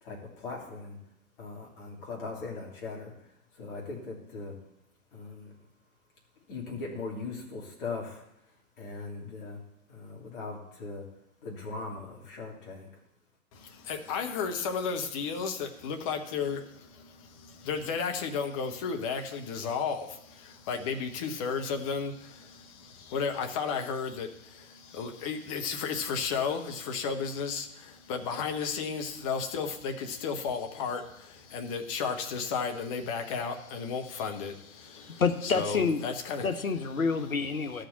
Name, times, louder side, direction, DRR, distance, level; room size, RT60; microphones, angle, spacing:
voice 1, 0.0-1.0 1.4-3.1 3.6-4.6 5.1-5.5 6.5-8.2 8.8-9.6 9.9-11.0 11.4-12.9, left 3 dB, 40° left, -2 dB, 3.2 m, -39 dB
voice 2, 13.5-36.5, left 5 dB, 25° left, 5 dB, 1.0 m, -33 dB
voice 3, 35.2-36.0 36.4-37.8, left 5 dB, 70° left, 8 dB, 1.2 m, -28 dB
12.5 x 5.2 x 7.3 m, 0.80 s
figure-of-eight pair, 120°, 43 cm